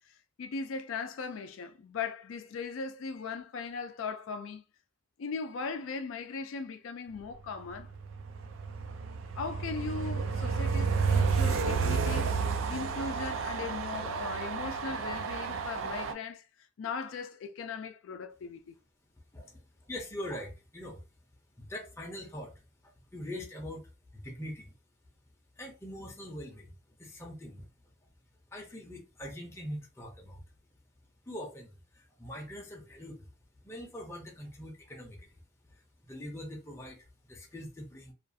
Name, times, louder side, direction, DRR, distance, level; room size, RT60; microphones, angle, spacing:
voice 1, 0.1-4.6 5.2-7.9 9.4-18.7, left 5 dB, 80° left, 0.4 m, -39 dB
Train, 7.7-16.1, right 5 dB, 75° right, 0.4 m, -31 dB
voice 2, 19.9-21.0 21.6-24.7 25.6-26.7 27.0-27.7 28.5-30.4 31.3-33.3 33.6-35.3 35.7-37.0 37.3-38.1, left 1 dB, 15° left, 0.5 m, -43 dB
2.4 x 2.3 x 2.6 m
head